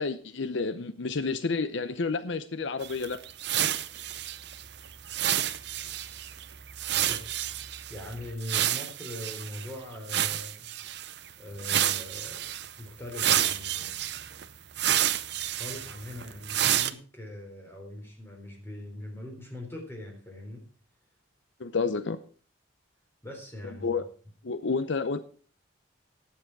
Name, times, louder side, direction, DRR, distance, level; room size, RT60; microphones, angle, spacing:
voice 1, 0.0-3.2 21.6-22.2 23.6-24.0 24.4-25.2, left 4 dB, 70° left, 12 dB, 0.7 m, -30 dB
sound 1, 2.8-9.7 10.1-11.2 11.6-12.7 13.1-16.9, right 11 dB, 55° right, 0.7 m, -30 dB
voice 2, 6.9-7.3 7.9-10.7 11.4-12.5 12.8-14.0 15.5-20.6 23.2-24.1, left 1 dB, 10° left, 1 dB, 3.6 m, -41 dB
18.0 x 7.4 x 4.6 m, 0.40 s
head